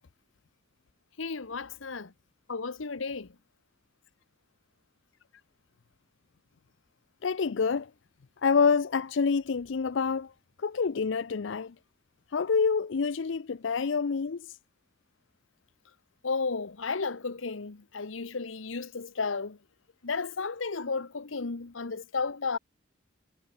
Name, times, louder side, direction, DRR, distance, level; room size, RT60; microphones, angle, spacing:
voice 1, 1.2-2.1 2.5-3.3 16.2-19.6 20.0-22.6, left 4 dB, 90° left, 1.1 m, -33 dB
voice 2, 7.2-7.9 8.4-10.3 10.6-11.7 12.3-14.6, left 5 dB, 65° left, 0.5 m, -27 dB
head